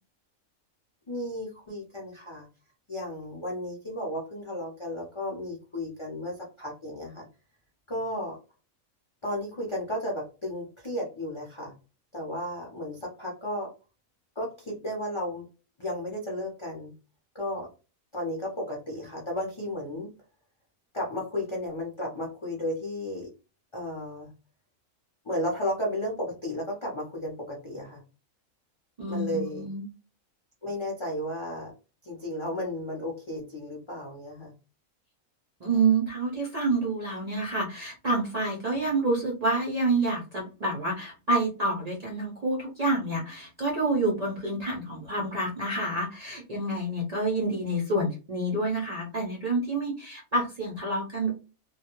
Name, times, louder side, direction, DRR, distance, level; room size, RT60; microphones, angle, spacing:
voice 1, 1.1-2.5 2.9-7.3 7.9-8.4 9.2-11.7 12.1-13.7 14.4-15.5 15.8-16.9 17.3-17.7 18.1-20.1 20.9-23.3 23.7-24.3 25.2-28.0 29.0-29.7 30.6-31.7 32.0-34.5 38.7-38.8, left 1 dB, 40° left, -4 dB, 0.4 m, -33 dB
voice 2, 29.0-29.9 35.6-51.3, right 2 dB, 60° right, -2 dB, 0.4 m, -28 dB
2.3 x 2.2 x 2.9 m, 0.32 s
omnidirectional pair, 1.5 m